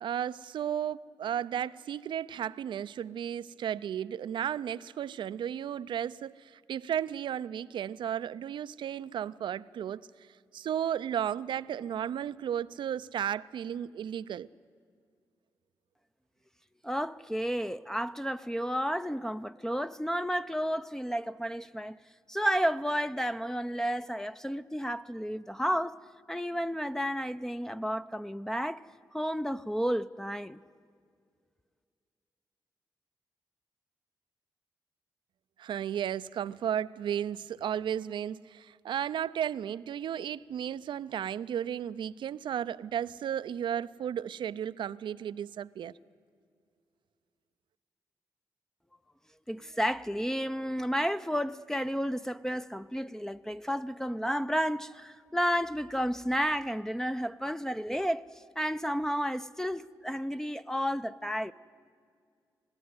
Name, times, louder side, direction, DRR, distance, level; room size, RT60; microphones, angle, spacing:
voice 1, 0.0-10.0 10.5-14.5 35.6-45.9, right 9 dB, 75° right, 0.5 m, -34 dB
voice 2, 16.8-22.0 22.3-26.0 26.3-28.9 29.1-30.6 49.5-58.2 58.6-61.5, equal, 5° left, 0.6 m, -32 dB
21.0 x 15.0 x 9.6 m
supercardioid pair, 45°, 8 cm